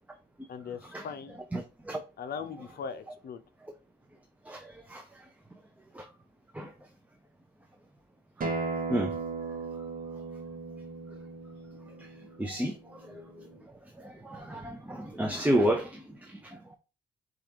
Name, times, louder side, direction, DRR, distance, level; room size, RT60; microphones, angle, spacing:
voice 1, 0.5-1.4 2.2-3.4, left 6 dB, 50° left, 0.7 m, -39 dB
voice 2, 1.5-2.0 2.4-2.5 4.5-5.0 5.9-6.1 6.5-6.7 8.4-8.5 8.9-9.1 12.0-12.1 12.4-13.5 14.0-16.8, right 1 dB, 5° right, 0.6 m, -32 dB
Acoustic guitar, 8.4-13.6, right 4 dB, 45° right, 1.3 m, -37 dB
4.8 x 2.5 x 4.5 m
cardioid pair, 90°, 20 cm